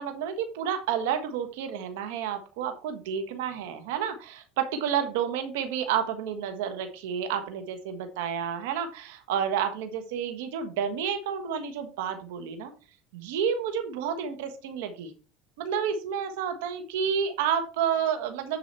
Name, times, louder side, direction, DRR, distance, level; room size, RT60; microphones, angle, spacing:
voice 1, 0.0-12.7 13.1-15.1 15.6-18.6, right 8 dB, 80° right, 7 dB, 1.4 m, -30 dB
10.0 x 4.8 x 4.3 m, 0.34 s
supercardioid pair, 95°, 0 cm